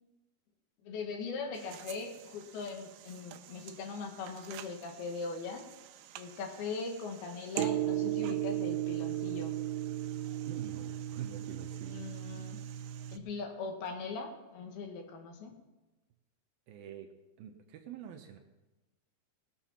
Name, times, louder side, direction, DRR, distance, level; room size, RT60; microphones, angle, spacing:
voice 1, 0.8-5.6 6.2-9.5 11.9-12.6 13.1-15.5, left 4 dB, 70° left, 3 dB, 3.4 m, -40 dB
sound 1, 1.6-13.2, right 13 dB, 90° right, 2.8 m, -37 dB
voice 2, 10.5-12.1 16.7-17.1 17.4-18.4, right 10 dB, 75° right, 5 dB, 2.4 m, -46 dB
19.5 x 7.2 x 5.8 m, 1.1 s
omnidirectional pair, 4.7 m